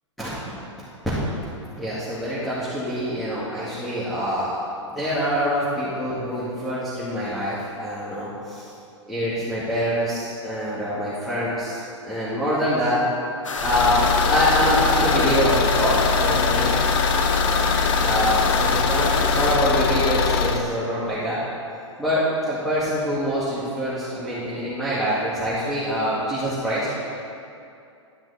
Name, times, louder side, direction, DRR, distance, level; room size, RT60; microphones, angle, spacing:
voice 1, 1.7-8.7 9.1-13.0 13.6-16.7 18.0-21.4 22.0-26.9, equal, ahead, -12 dB, 2.2 m, -25 dB
sound 1, 13.4-19.6, left 3 dB, 85° left, 0.9 m, -29 dB
Car / Engine, 13.6-20.6, left 5 dB, 50° left, 0.7 m, -22 dB
12.0 x 5.9 x 4.2 m, 2.6 s
hypercardioid pair, 110°, 16 cm